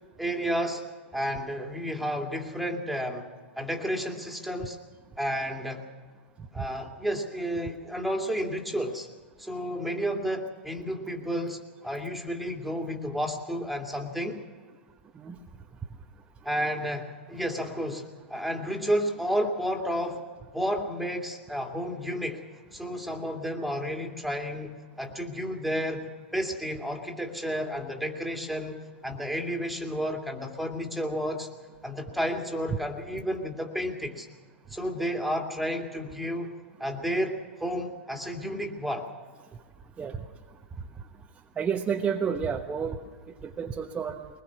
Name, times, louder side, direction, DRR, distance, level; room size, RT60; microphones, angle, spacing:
voice 1, 0.2-0.8 1.1-3.3 3.6-4.8 5.2-5.9 6.5-9.1 9.4-14.4 16.4-20.2 20.5-22.4 22.7-31.5 31.8-34.3 34.7-39.1, equal, ahead, 2 dB, 2.5 m, -31 dB
voice 2, 41.6-43.0 43.4-44.3, right 7 dB, 20° right, 2 dB, 1.1 m, -30 dB
22.5 x 20.5 x 6.0 m, 1.5 s
figure-of-eight pair, 100°, 6 cm